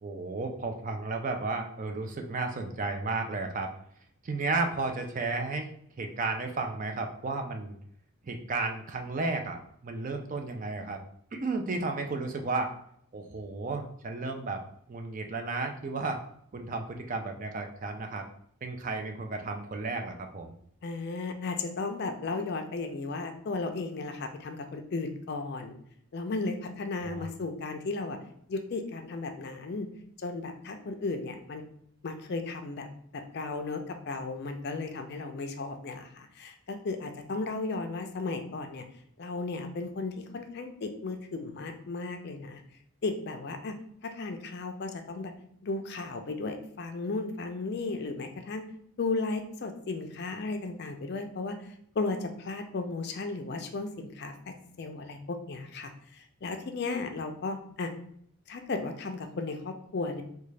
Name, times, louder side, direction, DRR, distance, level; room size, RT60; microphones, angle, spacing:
voice 1, 0.0-3.7 4.2-5.7 6.0-7.7 8.2-9.6 9.8-11.0 11.3-12.7 13.1-14.6 14.9-16.2 16.5-18.2 18.6-20.5 27.0-27.3, right 3 dB, 35° right, 4 dB, 0.4 m, -33 dB
voice 2, 20.8-25.8 26.1-28.2 28.5-29.9 30.2-31.6 32.0-32.9 33.1-38.8 39.2-42.6 43.0-43.7 44.0-45.3 45.6-48.6 49.0-51.6 52.0-57.9 58.5-60.2, left 3 dB, 50° left, 5 dB, 0.4 m, -35 dB
3.7 x 2.3 x 3.2 m, 0.67 s
head